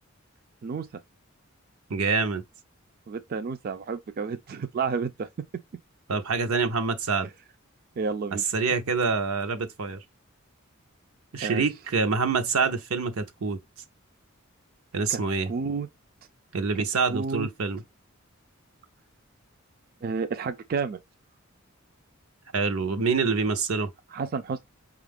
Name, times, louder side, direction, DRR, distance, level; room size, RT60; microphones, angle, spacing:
voice 1, 1.9-2.4 6.1-7.3 8.5-10.0 11.3-13.6 14.9-15.5 16.5-17.8 22.5-23.9, right 4 dB, 85° right, 0.7 m, -26 dB
voice 2, 3.1-5.3 8.0-8.4 11.4-11.6 15.1-15.2 15.5-15.9 17.1-17.5 20.0-21.0 24.1-24.7, right 5 dB, 45° right, 0.4 m, -30 dB
5.4 x 2.4 x 3.4 m
head